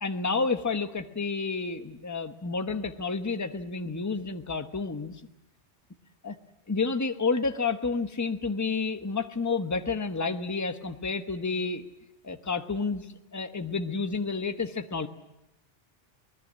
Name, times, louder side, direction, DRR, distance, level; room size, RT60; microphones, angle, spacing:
voice 1, 0.0-5.2 6.2-6.4 6.7-11.9 12.2-13.1 13.3-15.1, left 4 dB, 15° left, 8 dB, 1.0 m, -30 dB
25.5 x 19.5 x 7.5 m, 0.90 s
omnidirectional pair, 1.2 m